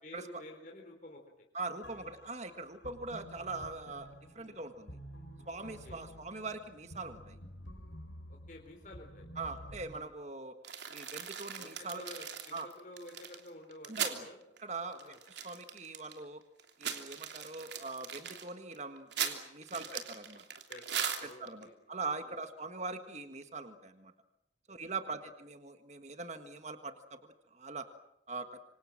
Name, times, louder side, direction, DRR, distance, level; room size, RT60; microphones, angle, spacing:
voice 1, 0.0-1.5 4.3-4.6 5.6-6.0 8.3-9.3 9.9-10.1 11.5-14.4 15.0-15.2 19.7-19.9 20.7-21.8 22.2-22.4 24.7-24.8, left 1 dB, 45° left, 1 dB, 4.0 m, -51 dB
voice 2, 1.5-4.1 4.3-5.0 5.4-7.4 9.4-10.5 10.9-12.0 12.5-12.7 13.9-14.3 14.6-15.0 15.3-16.4 16.8-20.4 21.4-24.1 24.7-27.2 27.5-27.8 28.3-28.6, right 3 dB, 35° right, 8 dB, 1.7 m, -42 dB
sound 1, 1.8-10.0, equal, 85° left, 5.0 m, -51 dB
sound 2, 10.6-14.2 14.6-14.7 14.9-16.2 16.6-21.6, right 8 dB, 65° right, 3.1 m, -39 dB
26.5 x 26.0 x 7.4 m, 0.78 s
head